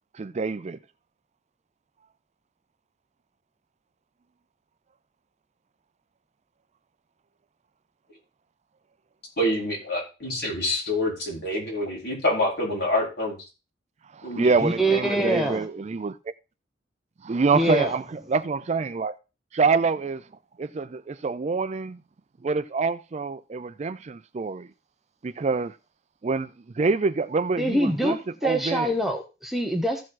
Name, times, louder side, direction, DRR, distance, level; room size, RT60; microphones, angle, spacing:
voice 1, 0.1-0.8 14.1-16.1 17.2-18.0 18.3-19.2 19.5-20.2 20.6-22.0 22.4-24.7 25.2-25.8 26.2-28.2 28.4-28.9, right 4 dB, 35° right, 0.4 m, -26 dB
voice 2, 9.4-13.4 14.2-14.6, left 1 dB, 60° left, 4.7 m, -26 dB
voice 3, 14.6-15.7 17.5-17.9 27.6-30.0, right 1 dB, ahead, 0.9 m, -25 dB
15.0 x 5.1 x 3.8 m
head